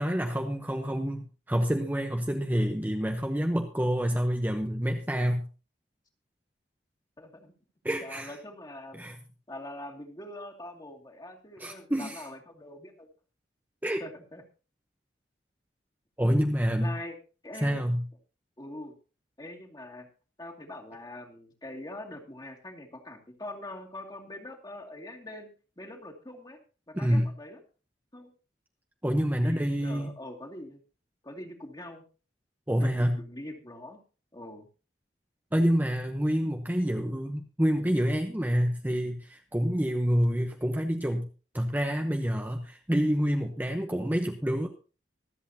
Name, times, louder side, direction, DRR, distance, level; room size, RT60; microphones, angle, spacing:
voice 1, 0.0-5.4 7.8-8.4 8.9-9.2 11.6-12.2 13.8-14.0 16.2-16.9 17.6-18.0 26.9-27.3 29.0-30.1 32.7-33.2 35.5-41.3 41.5-44.7, equal, 10° right, 4 dB, 0.9 m, -27 dB
voice 2, 7.2-7.5 7.9-9.1 9.5-13.1 14.0-14.4 16.8-17.2 17.4-17.8 18.6-18.9 19.4-20.1 20.4-25.5 25.8-26.6 26.9-27.6 28.1-28.3 29.4-30.8 31.2-32.0 32.8-34.0 34.3-34.7, left 1 dB, 25° left, 1 dB, 2.3 m, -43 dB
24.5 x 8.3 x 2.8 m, 0.35 s
head